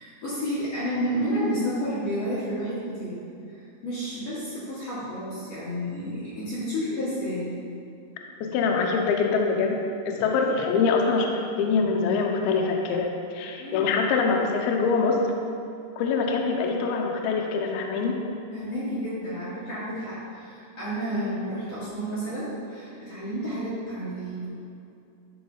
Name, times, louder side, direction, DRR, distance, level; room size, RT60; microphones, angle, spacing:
voice 1, 0.0-3.2 3.5-7.5 13.6-13.9 18.5-24.5, equal, 40° left, -12 dB, 2.9 m, -31 dB
voice 2, 8.4-15.2 16.0-18.2 21.1-21.3, left 4 dB, 75° left, 1 dB, 2.5 m, -24 dB
12.5 x 4.8 x 5.6 m, 2.6 s
omnidirectional pair, 5.0 m